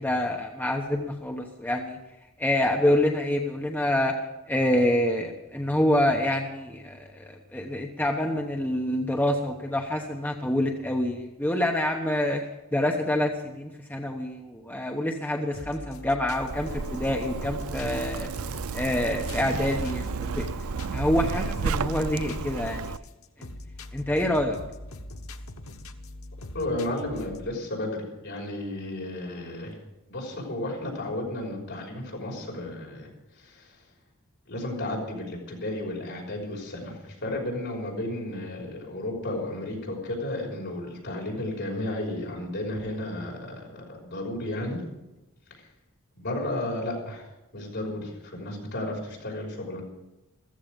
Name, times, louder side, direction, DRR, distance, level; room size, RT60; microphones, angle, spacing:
voice 1, 0.0-2.0 2.4-4.1 4.5-12.5 12.7-18.3 18.7-20.5 20.9-22.9 23.9-24.6, left 1 dB, 10° left, 2 dB, 1.0 m, -26 dB
sound 1, 15.5-27.5, left 1 dB, 80° left, 1.1 m, -42 dB
Zipper (clothing), 16.3-23.0, right 5 dB, 75° right, 0.5 m, -32 dB
voice 2, 26.5-29.8 30.1-33.9 34.5-44.8 45.5-45.7 46.2-47.3 47.5-49.8, left 1 dB, 55° left, -1 dB, 5.8 m, -33 dB
15.0 x 14.5 x 5.3 m, 0.99 s
head